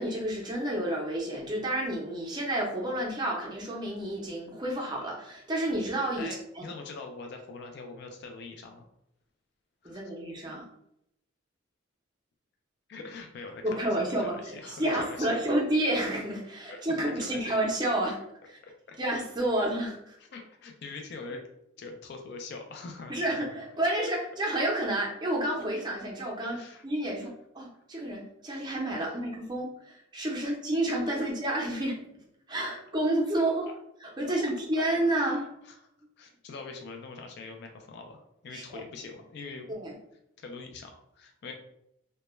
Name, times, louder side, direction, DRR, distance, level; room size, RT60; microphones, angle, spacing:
voice 1, 0.0-6.7 9.8-10.6 13.6-18.2 18.5-18.6 19.0-20.2 23.1-26.6 26.8-32.0 32.5-33.7 34.0-35.5 38.5-38.8 39.7-39.9, right 1 dB, 20° right, -2 dB, 0.5 m, -30 dB
voice 2, 6.2-8.8 9.8-10.0 12.9-15.4 16.7-17.4 18.6-19.0 20.2-21.5 21.8-23.4 26.5-27.3 31.1-31.2 33.7-33.8 34.2-34.3 34.7-34.8 35.1-35.8 36.2-39.7 40.4-41.5, left 4 dB, 55° left, 3 dB, 0.3 m, -43 dB
2.2 x 2.1 x 3.0 m, 0.77 s
head